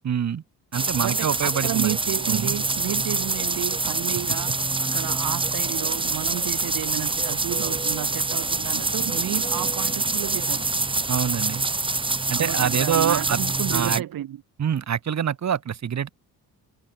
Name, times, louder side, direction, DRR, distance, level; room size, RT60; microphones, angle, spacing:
voice 1, 0.0-0.4 0.7-2.0 2.3-2.5 11.1-11.6 12.3-13.4 13.7-14.0 14.6-16.1, right 8 dB, 45° right, 5.7 m, -25 dB
sound 1, 0.7-14.0, right 3 dB, 15° right, 1.6 m, -26 dB
voice 2, 1.0-4.5 4.8-10.7 12.3-14.4, right 12 dB, 65° right, 3.8 m, -31 dB
cardioid pair, 145°, 38 cm